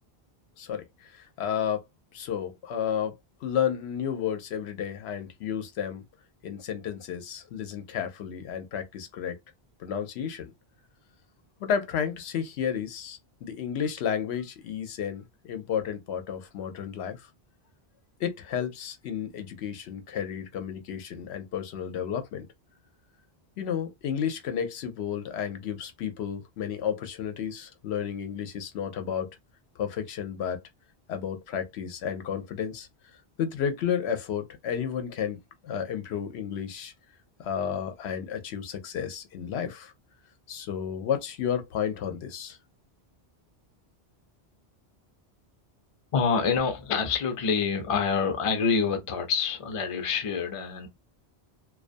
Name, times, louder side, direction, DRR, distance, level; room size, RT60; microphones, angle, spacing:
voice 1, 1.4-1.8 2.1-3.1 3.4-6.0 6.4-9.3 9.8-10.5 11.6-17.2 18.2-22.5 23.6-29.3 29.8-30.6 31.1-32.9 33.4-35.4 35.6-36.9 37.4-39.9 40.5-42.6, left 8 dB, 90° left, 0.9 m, -32 dB
voice 2, 46.1-50.9, left 5 dB, 40° left, 0.5 m, -26 dB
2.3 x 2.3 x 2.5 m
omnidirectional pair, 1.1 m